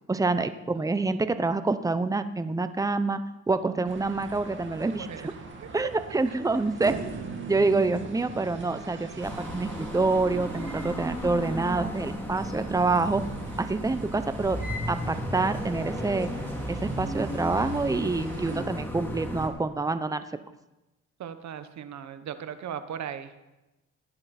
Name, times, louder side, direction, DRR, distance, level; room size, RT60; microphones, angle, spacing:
voice 1, 0.1-3.2 3.5-5.3 5.7-7.0 7.5-13.2 13.6-14.6 14.9-16.3 16.7-20.3, right 3 dB, 10° right, 11 dB, 0.8 m, -27 dB
sound 1, 3.8-18.6, right 3 dB, 40° right, 2.4 m, -42 dB
voice 2, 5.0-5.3 6.9-7.5 21.2-23.3, right 8 dB, 65° right, 10 dB, 1.2 m, -38 dB
sound 2, 9.2-19.5, equal, 5° left, 2.8 m, -34 dB
16.0 x 10.5 x 4.3 m, 1.0 s
cardioid pair, 90°, 30 cm